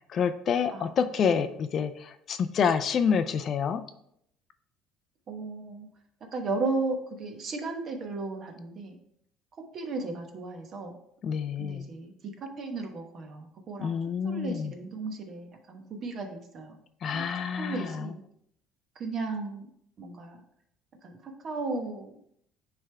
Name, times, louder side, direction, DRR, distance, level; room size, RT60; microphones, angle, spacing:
voice 1, 0.1-3.8 11.2-11.9 13.8-14.7 17.0-18.1, left 6 dB, 40° left, 10 dB, 0.4 m, -28 dB
voice 2, 5.3-5.9 6.3-9.0 9.6-10.9 11.6-14.0 14.2-16.8 17.1-17.3 17.6-18.2 19.0-19.7 20.0-20.4 21.0-22.2, right 3 dB, 40° right, 4 dB, 1.1 m, -35 dB
9.7 x 3.4 x 3.3 m, 0.71 s
cardioid pair, 150°, 0 cm